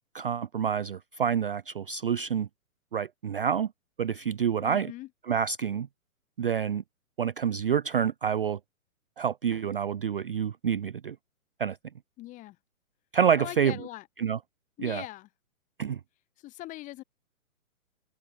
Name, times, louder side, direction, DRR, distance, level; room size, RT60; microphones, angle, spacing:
voice 1, 0.1-2.5 2.9-3.7 4.0-4.9 5.3-5.9 6.4-6.8 7.2-8.6 9.2-11.2 11.6-11.8 13.1-13.7 14.2-14.4 14.8-15.0 15.8-16.0, right 8 dB, 40° right, 0.4 m, -27 dB
voice 2, 4.6-5.1 12.2-12.6 13.4-14.1 14.8-15.3 16.4-17.0, left 17 dB, 15° left, 3.5 m, -41 dB
open air
hypercardioid pair, 160°, 43 cm